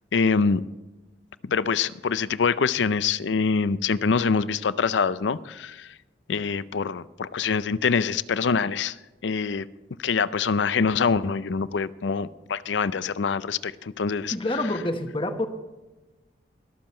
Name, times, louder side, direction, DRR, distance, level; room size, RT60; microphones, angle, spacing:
voice 1, 0.1-0.6 1.4-5.9 6.3-9.0 9.2-9.7 10.0-14.3, left 5 dB, 80° left, 17 dB, 0.5 m, -25 dB
voice 2, 14.3-15.5, left 1 dB, 30° left, 7 dB, 1.1 m, -27 dB
22.5 x 7.5 x 4.4 m, 1.1 s
head